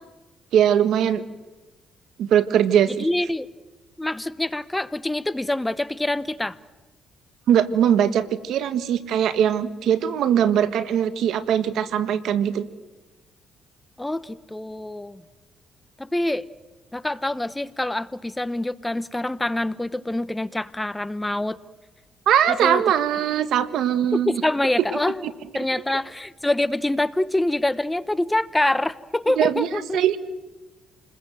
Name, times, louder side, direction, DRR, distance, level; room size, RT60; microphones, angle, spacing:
voice 1, 0.5-1.2 2.2-3.1 7.5-12.7 22.3-24.4 25.2-25.3 29.4-29.7 29.9-30.2, right 9 dB, 80° right, 13 dB, 1.6 m, -21 dB
voice 2, 2.9-3.5 4.0-6.6 14.0-15.2 16.0-16.5 16.9-21.6 22.5-22.8 24.1-25.3 25.5-30.0, left 1 dB, 10° left, 15 dB, 0.9 m, -25 dB
28.5 x 21.0 x 7.8 m, 1.2 s
cardioid pair, 90°, 0 cm